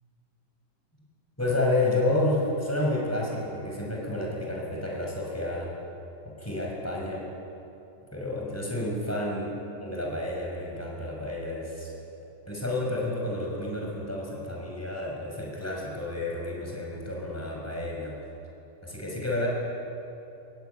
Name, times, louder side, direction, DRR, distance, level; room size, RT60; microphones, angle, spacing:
voice 1, 1.4-5.7 6.2-7.2 8.1-9.5 9.8-11.9 12.5-18.2 18.8-19.5, left 2 dB, 10° left, -2 dB, 6.0 m, -30 dB
23.0 x 22.5 x 9.4 m, 2.8 s
omnidirectional pair, 1.9 m